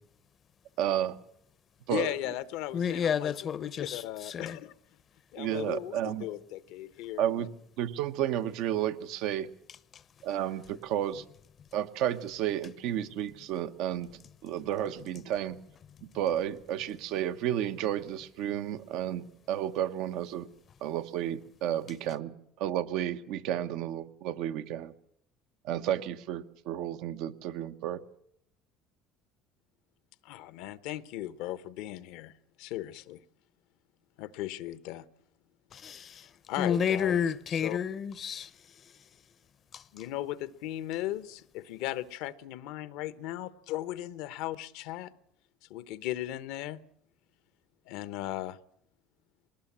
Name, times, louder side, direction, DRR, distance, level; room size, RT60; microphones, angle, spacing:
voice 1, 0.8-1.2 1.9-2.1 5.4-6.2 7.2-7.5 7.8-9.5 10.2-11.2 11.7-14.1 14.4-15.6 16.1-20.5 20.8-24.9 25.6-28.0, right 11 dB, 70° right, 1.1 m, -32 dB
voice 2, 1.9-4.7 5.3-7.5 30.2-32.3 32.6-33.2 34.2-35.0 36.1-37.2 37.5-37.8 39.9-45.1 45.7-46.8 47.9-48.6, left 14 dB, 75° left, 0.9 m, -37 dB
voice 3, 2.7-4.6 35.7-36.2 36.6-38.5 39.7-39.8, left 7 dB, 40° left, 0.7 m, -30 dB
21.0 x 18.5 x 7.4 m
supercardioid pair, 100°, 0 cm